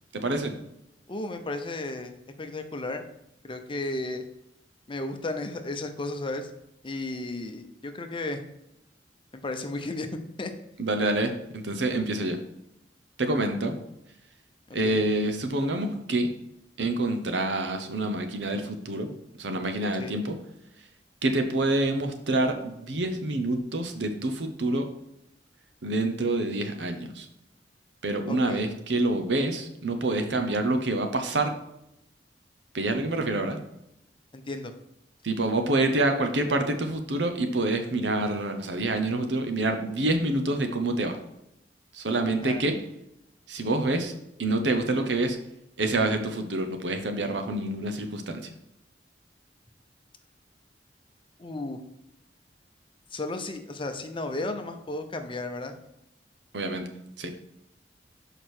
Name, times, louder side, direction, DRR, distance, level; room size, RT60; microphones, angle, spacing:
voice 1, 0.1-0.6 10.8-12.4 13.2-13.8 14.7-16.3 16.8-19.1 19.4-20.4 21.2-24.9 25.8-27.3 28.0-31.5 32.7-33.6 35.2-41.2 41.9-42.8 43.5-44.1 44.4-45.4 45.8-48.5 56.5-56.9 57.2-57.3, right 2 dB, 85° right, 6 dB, 0.9 m, -27 dB
voice 2, 1.1-3.0 3.4-4.2 4.9-6.5 6.8-8.4 9.4-10.1 10.4-10.5 14.8-15.0 20.0-20.2 28.3-28.6 34.3-34.7 42.4-42.7 51.4-51.8 53.1-55.7, left 2 dB, 30° left, 7 dB, 0.7 m, -34 dB
6.6 x 5.0 x 4.4 m, 0.82 s
head